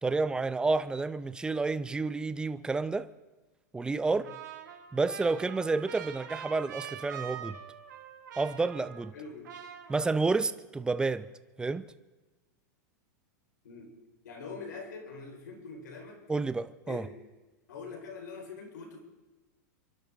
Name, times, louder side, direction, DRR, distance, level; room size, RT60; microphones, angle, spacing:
voice 1, 0.0-3.1 3.7-4.2 4.9-7.6 8.4-9.1 9.9-11.3 11.6-11.9 16.3-17.0, right 3 dB, 10° right, 0.6 m, -30 dB
Trumpet, 4.2-9.2 9.4-10.5, right 9 dB, 85° right, 2.2 m, -45 dB
voice 2, 9.1-9.5 13.6-13.9 14.2-16.2 16.9-17.1 17.7-19.0, left 4 dB, 85° left, 4.8 m, -44 dB
28.0 x 12.0 x 3.7 m
hypercardioid pair, 130°, 10 cm